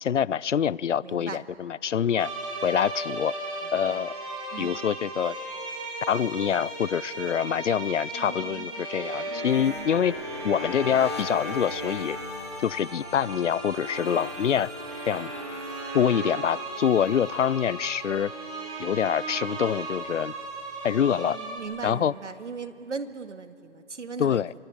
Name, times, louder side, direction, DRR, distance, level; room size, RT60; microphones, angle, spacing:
voice 1, 0.0-2.3 2.6-3.3 3.7-4.1 4.6-5.3 6.1-10.1 10.4-12.2 12.6-14.7 15.1-15.3 15.9-18.3 18.8-20.3 20.8-21.4 21.8-22.1 24.2-24.5, left 8 dB, 75° left, 0.6 m, -25 dB
voice 2, 1.0-1.4 3.9-4.0 4.5-4.8 8.1-8.7 9.3-9.9 21.2-24.4, right 5 dB, 75° right, 2.0 m, -39 dB
sound 1, 2.2-21.6, right 2 dB, 30° right, 5.3 m, -36 dB
sound 2, 9.5-18.7 18.9-19.4 19.7-21.2, left 5 dB, 20° left, 1.3 m, -43 dB
27.0 x 24.0 x 8.9 m
hypercardioid pair, 175°, 36 cm